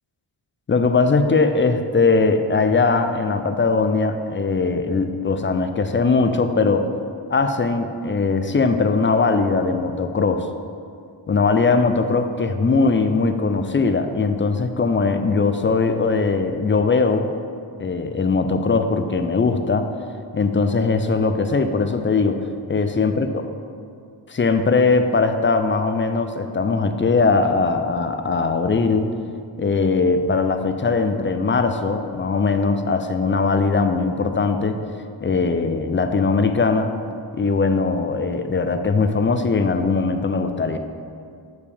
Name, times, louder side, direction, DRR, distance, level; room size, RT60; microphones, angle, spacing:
voice 1, 0.7-6.9 7.3-10.5 11.3-17.3 17.8-19.9 20.3-23.4 24.3-29.1 29.6-34.8 35.2-37.0 37.3-40.8, left 4 dB, 25° left, 8 dB, 0.4 m, -20 dB
6.9 x 4.9 x 3.4 m, 2.4 s
cardioid pair, 40°, 48 cm